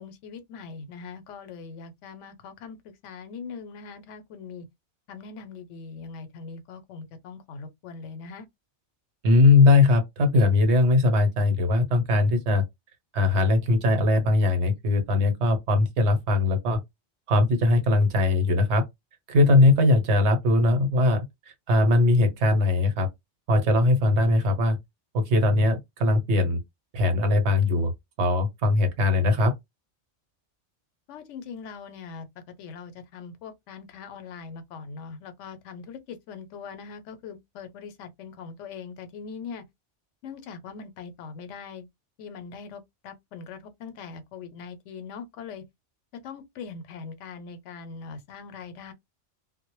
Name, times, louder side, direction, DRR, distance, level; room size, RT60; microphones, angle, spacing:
voice 1, 0.0-4.7 5.1-8.5 31.1-32.3 32.6-39.6 40.2-41.9 42.2-45.6 46.2-48.9, left 5 dB, 85° left, 0.9 m, -41 dB
voice 2, 9.2-12.6 13.1-16.8 17.3-18.8 19.3-21.2 21.7-23.1 23.5-24.8 25.1-26.6 26.9-27.9 28.2-29.5, left 2 dB, 75° right, 1.0 m, -20 dB
2.0 x 2.0 x 2.9 m
omnidirectional pair, 1.2 m